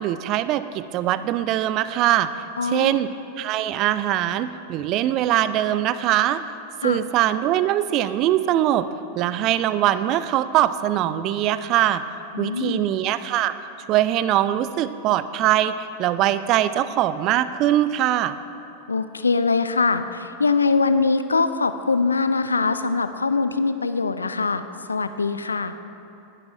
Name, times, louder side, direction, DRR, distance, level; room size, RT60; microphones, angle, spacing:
voice 1, 0.0-2.3 2.6-3.1 3.4-6.4 6.8-8.9 9.2-12.0 12.4-13.5 13.9-18.4, right 12 dB, 40° right, 14 dB, 0.4 m, -22 dB
voice 2, 2.6-3.0 6.8-7.0 12.3-12.8 18.9-24.6 24.9-25.8, left 4 dB, 75° left, 11 dB, 0.4 m, -22 dB
19.0 x 12.0 x 2.5 m, 2.7 s
figure-of-eight pair, 90°, 0 cm